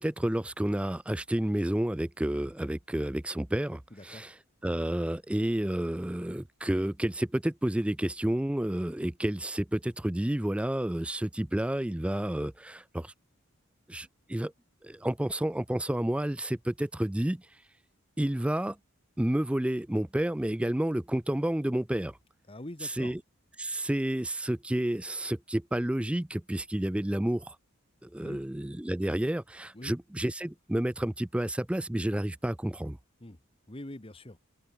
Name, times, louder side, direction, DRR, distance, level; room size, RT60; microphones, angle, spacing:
voice 1, 0.0-13.1 13.9-14.5 14.8-17.6 18.2-18.8 19.2-22.2 22.8-23.2 23.6-27.6 28.0-33.0, right 1 dB, 5° right, 0.3 m, -30 dB
voice 2, 3.9-4.3 22.5-23.2 28.2-28.4 29.7-29.9 33.2-33.4 33.7-34.4, left 1 dB, 25° left, 1.5 m, -44 dB
head